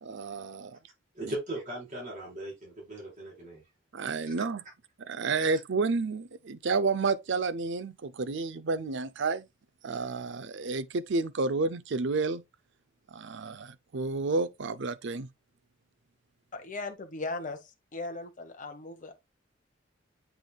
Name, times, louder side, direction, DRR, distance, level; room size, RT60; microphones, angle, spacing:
voice 1, 0.0-0.8 1.2-1.3 3.9-4.6 5.0-9.5 9.8-12.4 13.1-15.3, right 4 dB, 60° right, 0.6 m, -30 dB
voice 2, 1.1-3.6 4.3-4.4 5.4-5.5, right 1 dB, 40° right, 4.8 m, -38 dB
voice 3, 16.5-19.1, left 3 dB, 40° left, 1.0 m, -38 dB
8.0 x 5.2 x 2.3 m
head